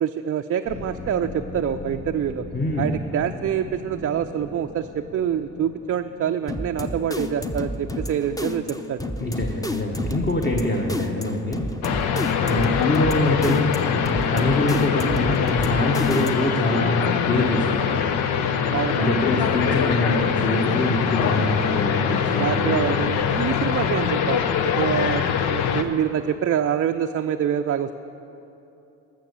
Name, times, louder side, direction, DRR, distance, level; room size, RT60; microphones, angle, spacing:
voice 1, 0.0-2.4 2.8-9.1 18.7-19.1 22.4-24.4 24.8-27.9, right 9 dB, 40° right, 6 dB, 0.5 m, -26 dB
sound 1, 0.7-7.1, left 2 dB, 50° left, 1.8 m, -39 dB
voice 2, 2.5-3.0 9.2-11.7 12.4-18.1 18.9-22.9, left 2 dB, 25° left, 0 dB, 1.3 m, -24 dB
sound 2, 6.5-16.6, left 1 dB, 10° left, 0.7 m, -30 dB
sound 3, 11.8-25.8, left 7 dB, 75° left, 0.7 m, -23 dB
13.5 x 6.4 x 6.9 m, 2.8 s
supercardioid pair, 55°, 38 cm